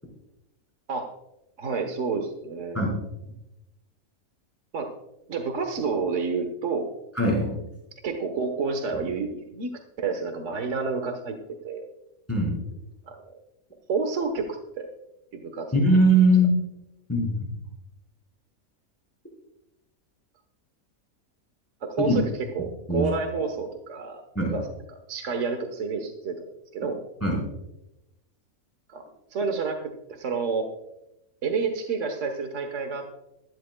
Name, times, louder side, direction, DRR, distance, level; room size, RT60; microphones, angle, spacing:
voice 1, 1.6-2.8 4.7-4.9 5.3-6.9 8.0-9.7 10.0-11.4 11.6-11.9 13.1-13.3 13.9-14.9 15.3-15.8 21.8-24.2 24.5-27.0 28.9-29.0 29.3-30.7 31.4-33.2, right 4 dB, 60° right, 5 dB, 1.4 m, -29 dB
voice 2, 7.2-7.5 12.3-12.6 15.7-16.6 17.1-17.5 22.1-22.2 22.9-23.1 24.4-24.5 27.2-27.4, right 1 dB, 10° left, -4 dB, 4.1 m, -20 dB
16.0 x 14.0 x 2.3 m, 0.90 s
omnidirectional pair, 1.5 m